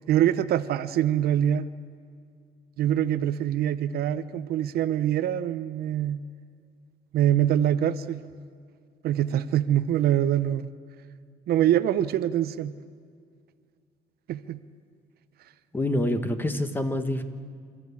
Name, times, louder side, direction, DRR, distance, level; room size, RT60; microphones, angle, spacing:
voice 1, 0.1-1.7 2.8-6.2 7.1-8.2 9.0-10.7 11.5-12.7 14.3-14.6, right 11 dB, 65° right, 13 dB, 0.7 m, -24 dB
voice 2, 15.7-17.2, left 1 dB, 10° left, 8 dB, 1.5 m, -26 dB
29.0 x 13.5 x 8.5 m, 2.1 s
cardioid pair, 110°, 17 cm